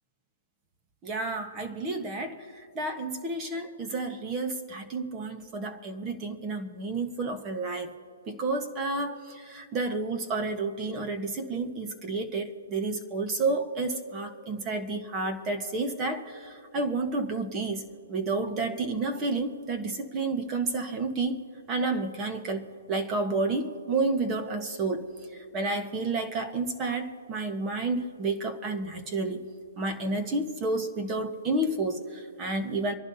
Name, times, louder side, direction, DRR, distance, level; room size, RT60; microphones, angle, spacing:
voice 1, 1.0-2.5 2.7-7.9 8.3-17.8 18.1-21.4 21.7-25.1 25.5-29.5 29.8-32.9, right 3 dB, 20° right, 6 dB, 1.3 m, -30 dB
26.0 x 11.5 x 2.8 m, 2.6 s
hypercardioid pair, 155°, 0 cm